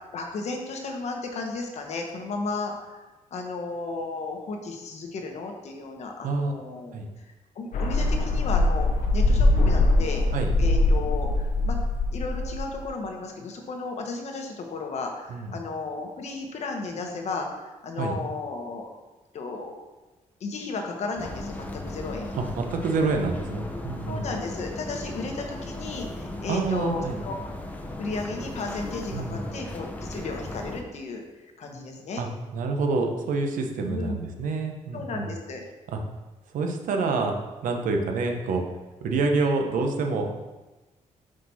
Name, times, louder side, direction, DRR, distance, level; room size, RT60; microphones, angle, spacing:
voice 1, 0.1-3.0 3.3-6.9 7.5-8.9 9.1-10.2 10.6-11.8 12.1-18.9 19.3-19.7 20.4-22.3 24.1-27.3 28.0-31.2 31.6-32.2 33.9-34.2 34.9-35.6, left 3 dB, 55° left, 2 dB, 1.1 m, -34 dB
sound 1, 7.7-12.8, left 2 dB, 75° left, 0.8 m, -22 dB
sound 2, 21.2-30.8, left 1 dB, 10° left, 0.7 m, -36 dB
voice 2, 22.3-24.3 26.5-27.2 29.1-29.4 32.2-35.3 35.9-36.0 36.5-37.3 37.6-38.6 39.0-40.3, right 3 dB, 80° right, 3 dB, 0.9 m, -27 dB
6.1 x 5.0 x 4.2 m, 1.1 s
cardioid pair, 130°, 13 cm